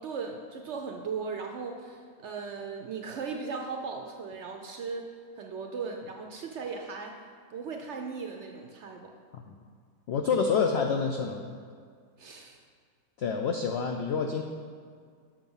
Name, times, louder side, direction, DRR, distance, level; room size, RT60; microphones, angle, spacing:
voice 1, 0.0-7.2 7.5-9.1 12.2-12.6, right 5 dB, 65° right, 3 dB, 0.7 m, -37 dB
voice 2, 10.1-11.6 13.2-14.4, left 5 dB, 80° left, 3 dB, 0.5 m, -28 dB
7.3 x 5.1 x 5.5 m, 2.1 s
omnidirectional pair, 1.6 m